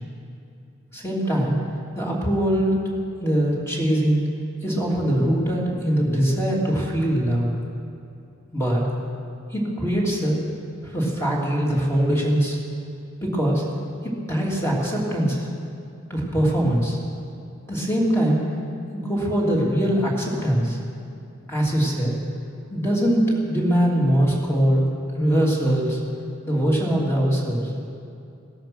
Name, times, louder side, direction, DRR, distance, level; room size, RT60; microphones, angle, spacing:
voice 1, 0.9-1.6 1.9-2.7 3.2-4.2 4.6-7.5 8.5-8.8 9.5-10.4 10.8-12.6 13.2-13.6 14.0-15.5 16.1-17.0 17.7-18.5 18.9-20.8 21.5-22.1 22.7-24.8 25.1-26.0 26.4-27.7, equal, 15° left, -3 dB, 3.0 m, -22 dB
18.0 x 13.0 x 6.1 m, 2.5 s
head